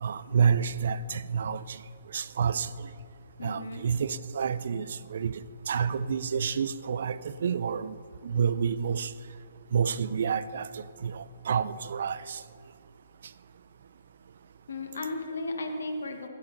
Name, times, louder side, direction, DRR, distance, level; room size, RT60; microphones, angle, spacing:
voice 1, 0.0-1.8 2.1-2.9 3.4-5.4 5.7-8.0 8.2-9.1 9.7-12.4, right 7 dB, 60° right, 0.4 m, -29 dB
voice 2, 3.4-3.9 14.7-16.3, left 2 dB, 85° left, 1.0 m, -35 dB
16.5 x 7.3 x 3.8 m
hypercardioid pair, 155°, 0 cm